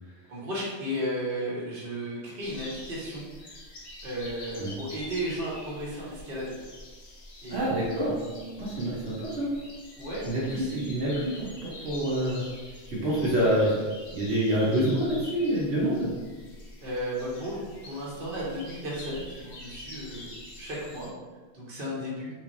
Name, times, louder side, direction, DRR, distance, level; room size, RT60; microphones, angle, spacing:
voice 1, 0.3-3.3 4.0-6.6 7.4-8.8 10.0-11.0 16.8-20.3 20.6-21.1 21.5-22.3, equal, 60° right, -6 dB, 1.2 m, -34 dB
sound 1, 2.4-21.1, left 1 dB, 80° left, 1.1 m, -46 dB
voice 2, 7.5-8.2 8.6-9.5 10.2-12.4 12.9-13.8 14.1-16.1, right 1 dB, 80° right, -6 dB, 1.2 m, -27 dB
3.9 x 3.1 x 2.6 m, 1.3 s
omnidirectional pair, 1.1 m